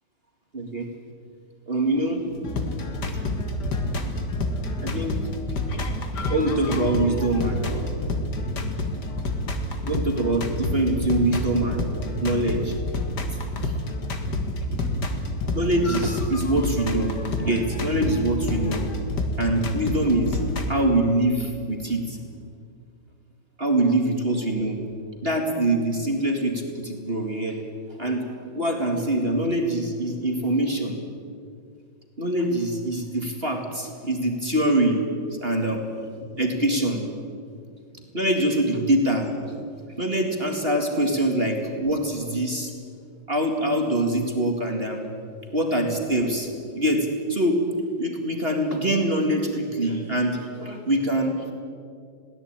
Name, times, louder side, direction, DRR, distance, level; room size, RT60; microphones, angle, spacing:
voice 1, 0.5-0.9 1.7-2.2 3.1-3.2 4.8-5.2 6.3-8.0 8.6-8.7 9.8-12.8 13.6-13.7 15.5-17.1 17.4-18.8 19.4-20.4 20.7-22.2 23.6-24.8 25.2-27.6 28.0-28.2 28.5-31.0 32.2-35.0 35.4-35.8 36.2-37.0 37.9-39.6 40.0-42.7 43.3-45.0 45.5-47.6 48.0-51.5, right 1 dB, 30° right, 2 dB, 2.3 m, -24 dB
sound 1, 2.3-20.7, left 1 dB, 55° left, 2.4 m, -28 dB
21.5 x 17.0 x 8.9 m, 2.3 s
omnidirectional pair, 2.2 m